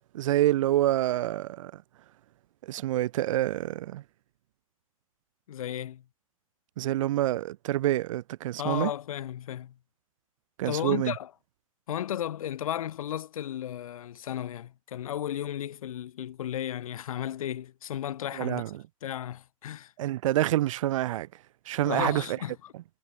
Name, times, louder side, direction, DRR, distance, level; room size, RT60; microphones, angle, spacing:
voice 1, 0.1-1.8 2.6-4.0 6.8-8.9 10.6-11.1 18.3-18.8 20.0-21.3 21.7-22.4, right 14 dB, 65° right, 0.8 m, -27 dB
voice 2, 5.5-6.0 8.6-9.7 10.7-11.3 11.9-18.6 19.0-19.9 21.9-22.7, left 11 dB, 70° left, 2.6 m, -34 dB
hypercardioid pair, 115°, 18 cm